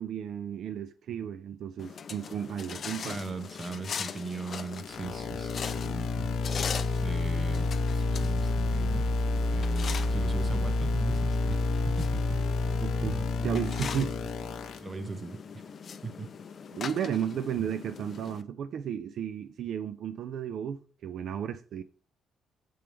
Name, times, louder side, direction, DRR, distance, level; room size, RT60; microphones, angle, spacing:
voice 1, 0.0-3.2 12.8-14.3 16.7-21.8, right 9 dB, 70° right, 0.3 m, -34 dB
sound 1, 1.8-18.4, left 6 dB, 50° left, 0.4 m, -41 dB
voice 2, 3.0-6.6 7.0-9.1 9.5-12.5 14.7-15.6 16.0-16.3, right 3 dB, 30° right, 0.7 m, -39 dB
sound 2, 4.8-14.8, left 3 dB, 85° left, 1.0 m, -29 dB
6.0 x 4.5 x 3.4 m
cardioid pair, 90°, 0 cm